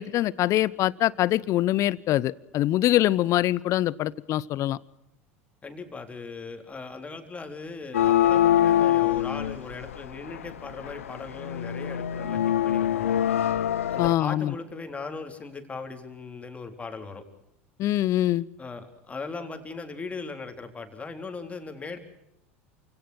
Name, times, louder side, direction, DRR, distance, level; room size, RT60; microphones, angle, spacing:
voice 1, 0.0-4.8 14.0-14.5 17.8-18.5, left 14 dB, 45° left, 21 dB, 0.9 m, -24 dB
voice 2, 5.6-13.1 13.9-17.2 18.6-22.0, left 4 dB, 20° left, 6 dB, 3.9 m, -38 dB
sound 1, 7.9-14.1, left 11 dB, 85° left, 0.8 m, -24 dB
28.0 x 17.0 x 6.4 m, 0.80 s
hypercardioid pair, 90°, 7 cm